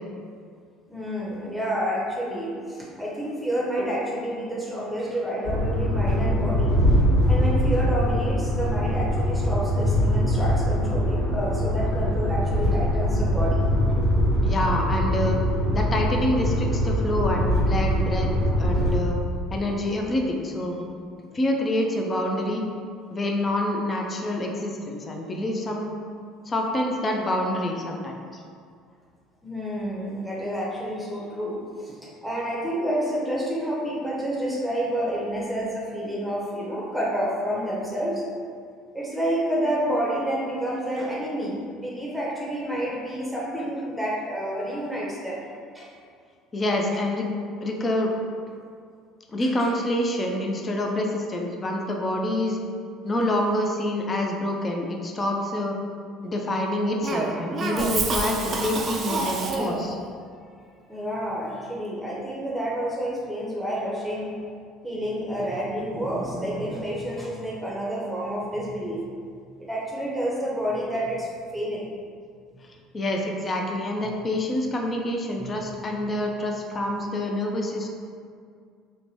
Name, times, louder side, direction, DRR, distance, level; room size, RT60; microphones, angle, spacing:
voice 1, 0.9-6.8 7.3-13.6 29.4-38.3 38.9-45.5 45.7-45.9 49.4-49.7 60.9-64.4 64.8-69.0 69.6-71.9 75.4-75.7, equal, 5° right, -5 dB, 0.7 m, -29 dB
sound 1, 5.4-18.9, equal, 90° left, 1.2 m, -23 dB
voice 2, 14.4-15.4 15.7-18.3 18.6-19.2 19.5-20.8 21.3-22.6 23.1-25.9 26.5-28.4 46.5-47.3 47.6-48.1 49.3-52.6 53.0-55.8 56.2-60.0 72.9-77.9, left 1 dB, 30° left, 1 dB, 0.4 m, -27 dB
Cough, 57.0-60.0, right 3 dB, 40° right, 0.3 m, -27 dB
2.8 x 2.2 x 2.8 m, 2.2 s
hypercardioid pair, 65°, 0 cm